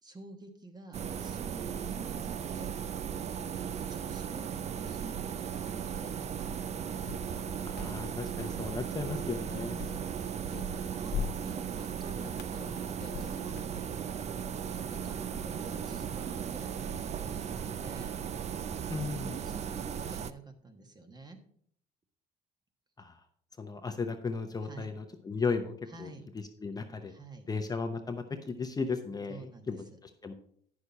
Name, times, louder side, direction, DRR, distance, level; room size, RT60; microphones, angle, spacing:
voice 1, 0.0-2.7 3.4-6.7 9.5-10.0 10.5-11.2 11.4-13.9 14.2-18.1 19.2-21.4 24.6-24.9 25.9-26.3 27.0-27.5 29.3-30.0, right 2 dB, 25° right, 6 dB, 1.3 m, -48 dB
sound 1, 0.9-20.3, right 8 dB, 40° right, 0.5 m, -36 dB
sound 2, 7.0-13.8, left 8 dB, 80° left, 0.6 m, -43 dB
voice 2, 7.6-9.7 18.9-19.3 23.0-23.1 23.6-25.7 26.0-26.1 26.6-27.1 27.5-30.3, left 4 dB, 20° left, 6 dB, 0.7 m, -35 dB
9.5 x 6.4 x 4.2 m, 0.63 s
cardioid pair, 110°, 17 cm